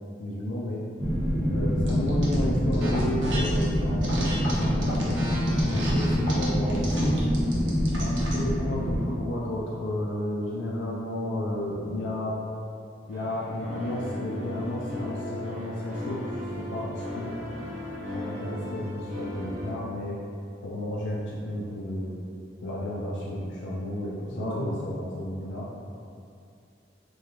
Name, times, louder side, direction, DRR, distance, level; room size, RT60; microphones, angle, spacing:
voice 1, 0.2-0.8 1.5-5.2 5.7-7.2 8.0-12.3 13.1-16.3 16.6-17.4 18.1-20.2 20.6-22.1 22.6-25.7, left 1 dB, 75° left, -5 dB, 0.3 m, -32 dB
sound 1, 1.0-9.0, equal, 15° right, 1.0 m, -25 dB
sound 2, 1.9-2.3 2.7-3.7 4.0-8.4, right 1 dB, 85° right, 0.6 m, -35 dB
voice 2, 5.6-6.1 24.3-24.7, equal, 25° left, -12 dB, 1.1 m, -33 dB
sound 3, 13.1-19.7, left 1 dB, 45° right, 0.6 m, -36 dB
2.3 x 2.1 x 2.9 m, 2.4 s
head